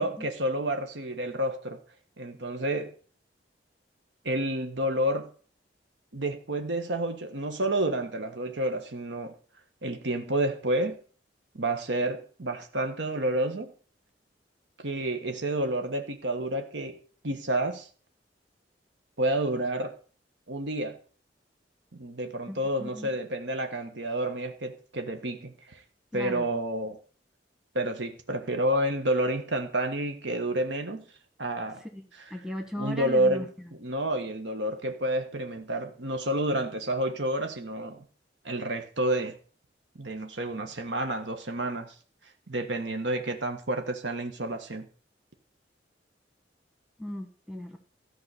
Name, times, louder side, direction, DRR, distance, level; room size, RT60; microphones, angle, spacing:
voice 1, 0.0-1.8 2.2-2.9 4.2-5.3 6.1-9.3 9.8-11.0 11.5-13.7 14.8-17.0 17.2-17.9 19.2-19.9 20.5-20.9 22.0-25.8 26.1-27.0 27.7-31.1 31.4-31.8 32.2-32.3 32.8-38.0 38.4-39.3 39.9-41.9 42.5-44.9, right 1 dB, 85° right, 6 dB, 1.3 m, -29 dB
voice 2, 22.5-23.1 26.1-26.5 31.9-32.0 32.3-33.5 47.0-47.8, left 1 dB, 5° right, 4 dB, 1.2 m, -37 dB
13.5 x 4.8 x 8.2 m, 0.42 s
head